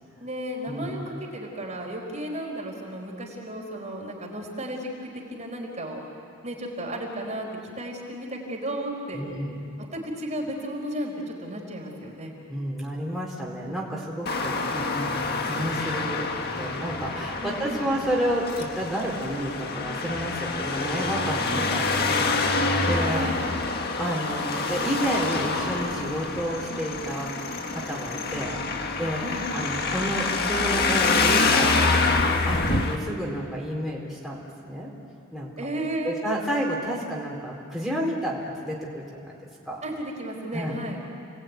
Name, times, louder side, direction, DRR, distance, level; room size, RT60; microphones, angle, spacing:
voice 1, 0.2-6.0 6.4-7.5 7.8-9.2 9.9-12.3 17.4-17.9 21.4-21.8 23.1-23.4 29.2-29.5 35.6-36.2 39.8-41.0, right 1 dB, 35° right, -1 dB, 4.4 m, -34 dB
voice 2, 9.1-9.6 12.5-15.1 15.5-16.3 16.6-23.3 24.0-27.3 27.7-29.2 29.5-31.7 32.5-34.9 35.3-35.5 36.0-39.4 39.7-39.8 40.5-41.0, equal, ahead, -5 dB, 4.0 m, -30 dB
Traffic noise roadway noise, 14.3-33.0, left 3 dB, 50° left, 1.7 m, -26 dB
30.0 x 20.0 x 9.5 m, 2.5 s
head